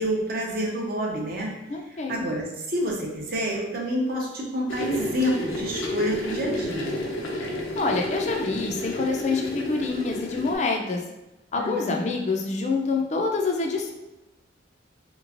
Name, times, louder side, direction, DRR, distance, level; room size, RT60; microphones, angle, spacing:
voice 1, 0.0-1.6 2.1-7.0 11.6-12.0, equal, 50° right, -1 dB, 0.6 m, -28 dB
voice 2, 1.7-2.2 7.8-11.0 11.5-13.9, left 3 dB, 35° left, 2 dB, 0.4 m, -26 dB
sound 1, 4.7-10.5, left 1 dB, 80° left, 0.6 m, -31 dB
3.3 x 3.0 x 2.5 m, 0.97 s
head